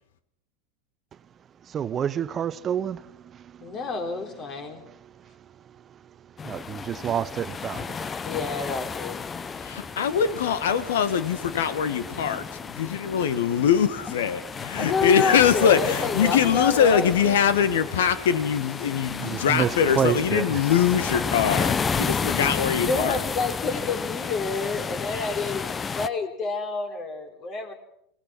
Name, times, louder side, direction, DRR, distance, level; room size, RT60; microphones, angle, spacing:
voice 1, 1.6-3.8 4.8-8.3 9.4-9.8 19.2-20.6, right 8 dB, 30° right, 0.9 m, -30 dB
voice 2, 3.6-4.8 8.2-9.2 14.8-17.3 22.9-27.7, left 4 dB, 40° left, 4.2 m, -29 dB
sound 1, 6.4-26.1, left 5 dB, 25° left, 0.7 m, -32 dB
voice 3, 9.6-13.9 14.1-14.4 14.7-23.2, left 8 dB, 70° left, 1.6 m, -22 dB
26.0 x 18.5 x 6.0 m
hypercardioid pair, 85°, 0 cm